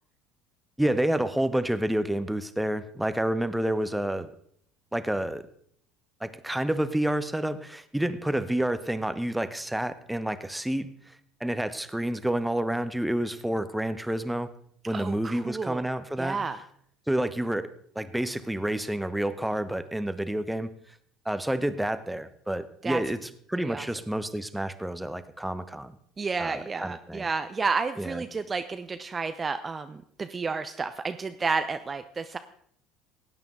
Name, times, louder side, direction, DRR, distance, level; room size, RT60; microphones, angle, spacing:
voice 1, 0.8-4.3 4.9-5.4 6.2-10.9 11.4-14.5 14.9-16.4 17.1-17.7 17.9-20.7 21.2-25.9 26.4-27.3 28.0-28.2, right 1 dB, 5° right, 12 dB, 0.9 m, -29 dB
voice 2, 14.9-15.8 16.2-16.6 22.8-23.0 23.6-23.9 26.2-32.4, right 4 dB, 25° right, 10 dB, 0.6 m, -31 dB
17.0 x 9.0 x 3.8 m, 0.66 s
hypercardioid pair, 65°, 0 cm